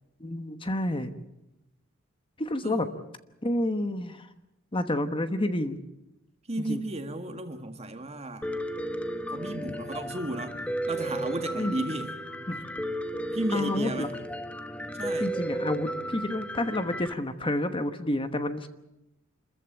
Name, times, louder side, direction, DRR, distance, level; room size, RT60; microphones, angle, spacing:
voice 1, 0.2-1.1 2.4-2.9 3.4-4.3 4.7-5.8 6.7-6.8 11.5-11.9 12.5-12.6 13.5-14.1 15.2-18.7, left 1 dB, 25° left, 10 dB, 1.1 m, -29 dB
voice 2, 6.5-8.5 9.3-10.6 10.9-12.2 13.3-14.2 14.9-15.4, right 1 dB, 30° right, 6 dB, 1.8 m, -34 dB
Piano, 8.4-17.1, right 1 dB, 5° left, 0.9 m, -34 dB
27.0 x 14.5 x 8.9 m, 0.95 s
head